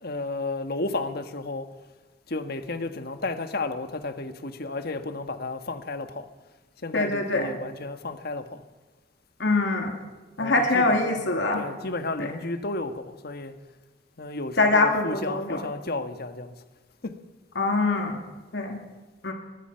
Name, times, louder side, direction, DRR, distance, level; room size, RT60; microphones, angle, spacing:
voice 1, 0.0-1.7 2.3-6.3 6.8-8.6 10.4-11.3 11.5-13.5 14.2-16.5 17.0-17.2, left 2 dB, 55° left, 1.5 m, -32 dB
voice 2, 6.9-7.5 9.4-9.9 10.4-11.6 12.2-12.3 14.6-15.6 17.6-18.2 18.5-18.8 19.2-19.3, left 2 dB, 75° left, 2.7 m, -23 dB
22.5 x 21.0 x 5.8 m
head